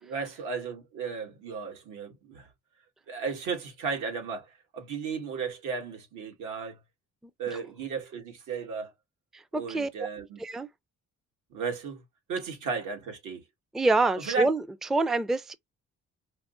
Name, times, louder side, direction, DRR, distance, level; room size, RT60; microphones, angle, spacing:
voice 1, 0.0-2.5 3.1-6.8 7.4-8.9 9.5-10.4 11.5-12.0 12.3-13.4 14.2-14.5, right 5 dB, 85° right, 1.6 m, -34 dB
voice 2, 9.5-9.9 10.4-10.7 13.7-14.6 14.9-15.5, right 2 dB, ahead, 0.4 m, -25 dB
4.7 x 2.1 x 2.4 m
cardioid pair, 90°, 30 cm